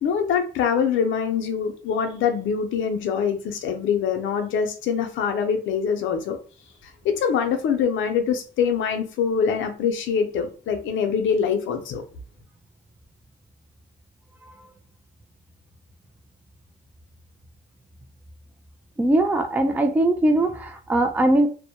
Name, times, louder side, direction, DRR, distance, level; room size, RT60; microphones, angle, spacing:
voice 1, 0.0-6.4 6.8-12.0, left 7 dB, 75° left, 0.5 m, -24 dB
voice 2, 19.0-21.5, right 1 dB, 10° right, 0.3 m, -20 dB
2.1 x 2.1 x 2.8 m
cardioid pair, 90°, 20 cm